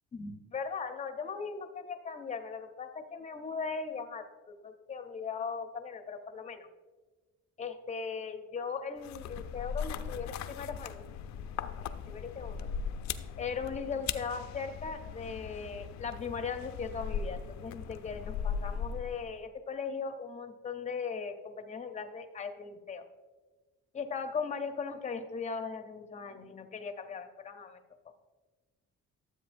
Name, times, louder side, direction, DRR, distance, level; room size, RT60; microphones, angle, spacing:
voice 1, 0.1-6.7 7.6-11.0 11.8-12.7 13.4-23.0 23.9-27.8, left 5 dB, 25° left, 7 dB, 0.6 m, -38 dB
sound 1, 9.0-19.4, left 7 dB, 70° left, 0.5 m, -39 dB
12.5 x 7.8 x 2.5 m, 1.3 s
cardioid pair, 135°, 29 cm